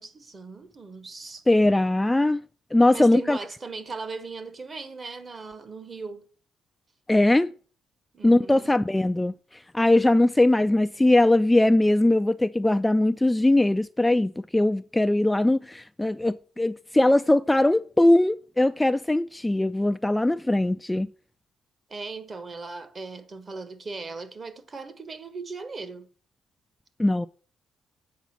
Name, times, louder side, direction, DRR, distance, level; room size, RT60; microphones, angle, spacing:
voice 1, 0.0-1.4 2.9-6.3 8.1-8.8 21.9-26.1, right 4 dB, 35° right, 1.3 m, -38 dB
voice 2, 1.5-2.4 2.7-3.4 7.1-7.5 8.2-9.3 9.7-21.1 27.0-27.3, left 1 dB, 10° left, 0.3 m, -21 dB
8.3 x 5.1 x 5.9 m
cardioid pair, 90°, 0 cm